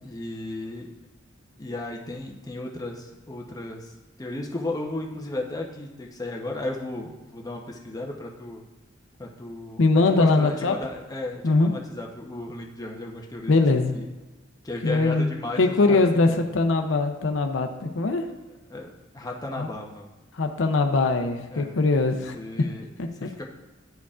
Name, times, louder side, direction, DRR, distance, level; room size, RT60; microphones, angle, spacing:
voice 1, 0.0-0.9 1.6-3.9 4.2-8.6 9.2-13.5 13.9-14.1 14.6-16.0 18.7-20.1 21.5-21.8 22.3-22.9 23.2-23.4, left 2 dB, 20° left, 0 dB, 0.8 m, -34 dB
voice 2, 9.8-10.8 11.4-11.7 13.5-14.0 14.8-15.3 15.6-18.3 19.6-19.7 20.3-22.3 23.0-23.1, left 3 dB, 75° left, 5 dB, 0.6 m, -21 dB
11.5 x 4.6 x 2.4 m, 1.2 s
head